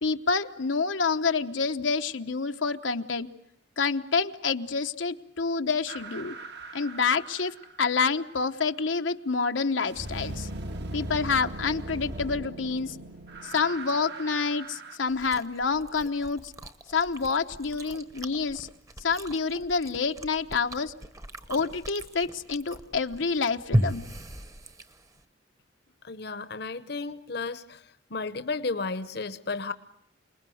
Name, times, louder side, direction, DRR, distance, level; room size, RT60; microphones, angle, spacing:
voice 1, 0.0-3.3 3.8-6.4 6.7-10.5 10.9-13.0 13.4-16.5 16.9-18.7 19.0-20.9 21.5-24.1, left 4 dB, 85° left, 6 dB, 1.0 m, -28 dB
sound 1, 5.9-8.1 9.9-15.0, right 1 dB, 60° right, 1.6 m, -39 dB
Chewing mastication, 15.1-25.2, equal, 20° right, 1.1 m, -36 dB
voice 2, 26.0-27.8 28.1-29.7, left 3 dB, 60° left, 12 dB, 1.0 m, -33 dB
28.0 x 20.5 x 7.8 m, 0.73 s
head